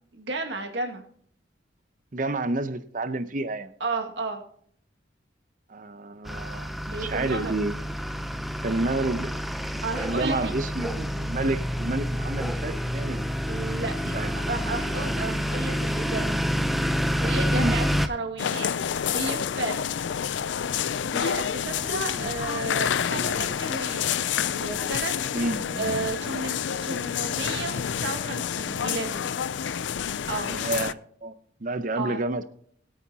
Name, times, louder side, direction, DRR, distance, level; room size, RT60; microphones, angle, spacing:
voice 1, 0.2-1.0 3.8-4.4 6.9-7.6 9.8-10.5 13.5-16.3 17.2-19.9 20.9-24.1 24.5-25.1 25.4-25.5 25.8-29.3 30.3-30.5 32.0-32.2, right 3 dB, 65° right, 3 dB, 2.0 m, -33 dB
voice 2, 2.1-3.7 5.7-7.9 8.6-9.4 10.0-13.3 14.1-14.3 17.5-17.8 22.1-22.3 23.1-23.4 25.3-25.9 30.5-32.4, right 2 dB, 45° right, 12 dB, 0.7 m, -30 dB
sound 1, 6.3-18.1, equal, ahead, 0.6 m, -28 dB
sound 2, 18.4-30.9, left 8 dB, 70° left, 0.4 m, -28 dB
21.5 x 8.7 x 2.8 m, 0.62 s
head